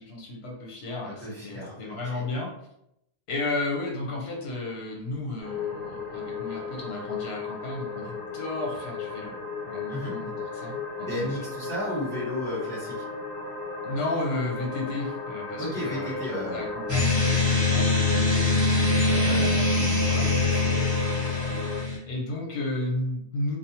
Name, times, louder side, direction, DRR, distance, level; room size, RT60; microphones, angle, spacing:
voice 1, 0.0-2.5 3.3-9.3 9.7-11.3 13.8-18.5 19.2-20.3 22.1-23.6, left 2 dB, 85° left, -1 dB, 0.9 m, -33 dB
voice 2, 1.2-1.7 2.1-2.2 9.9-10.1 11.0-13.0 15.6-16.6 18.7-19.6 19.9-20.8, left 1 dB, 5° left, -8 dB, 1.1 m, -34 dB
sound 1, 5.4-21.8, left 3 dB, 65° left, 1.3 m, -35 dB
sound 2, 16.9-22.0, left 3 dB, 20° right, 0.8 m, -23 dB
2.6 x 2.1 x 2.8 m, 0.80 s
omnidirectional pair, 1.0 m